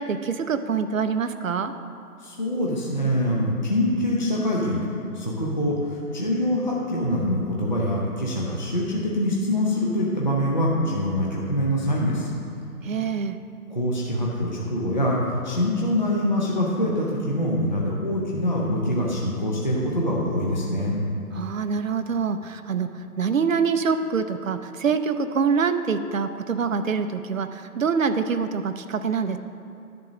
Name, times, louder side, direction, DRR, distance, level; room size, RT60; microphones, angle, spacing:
voice 1, 0.0-1.7 12.8-13.4 21.3-29.4, right 5 dB, 60° right, 10 dB, 0.5 m, -25 dB
voice 2, 2.2-4.8 5.1-12.3 13.7-21.0, left 1 dB, 30° left, -4 dB, 0.5 m, -24 dB
10.5 x 3.8 x 5.9 m, 2.8 s
hypercardioid pair, 170°, 46 cm